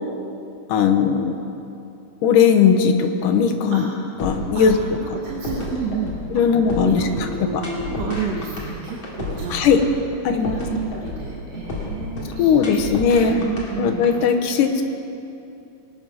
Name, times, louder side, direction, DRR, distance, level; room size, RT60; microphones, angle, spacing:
voice 1, 0.7-1.3 2.2-3.9 4.2-4.8 6.3-7.3 7.5-7.6 9.5-9.8 10.2-10.6 12.4-13.4 13.8-14.8, left 6 dB, 75° left, 5 dB, 2.4 m, -18 dB
sound 1, 4.2-14.1, left 2 dB, 45° left, 3.1 m, -31 dB
voice 2, 5.2-9.7 10.3-12.9 13.3-14.1, right 5 dB, 60° right, -2 dB, 2.0 m, -30 dB
21.5 x 9.1 x 6.3 m, 2.7 s
omnidirectional pair, 4.0 m